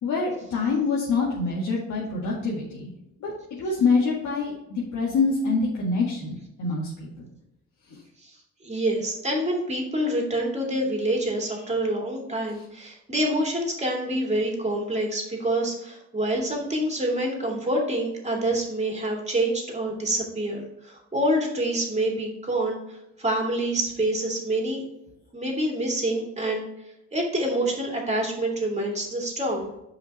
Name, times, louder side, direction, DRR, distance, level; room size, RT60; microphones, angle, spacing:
voice 1, 0.0-2.9 3.2-3.3 3.6-6.3 6.6-7.3 7.9-8.0, left 4 dB, 75° left, -4 dB, 1.9 m, -25 dB
voice 2, 8.6-24.8 25.3-26.7 27.1-29.7, right 1 dB, 20° right, 1 dB, 2.5 m, -27 dB
5.9 x 5.1 x 5.4 m, 0.88 s
cardioid pair, 90°, 30 cm